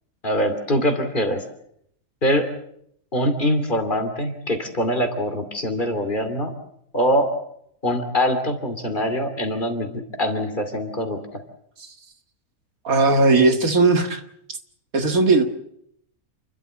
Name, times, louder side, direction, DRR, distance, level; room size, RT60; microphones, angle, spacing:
voice 1, 0.2-1.4 2.2-2.5 3.1-6.5 6.9-7.3 7.8-11.4, equal, 35° left, 7 dB, 2.9 m, -23 dB
voice 2, 12.8-14.2 14.9-15.4, right 3 dB, 70° right, 6 dB, 2.3 m, -17 dB
29.0 x 13.0 x 8.7 m, 0.72 s
omnidirectional pair, 1.6 m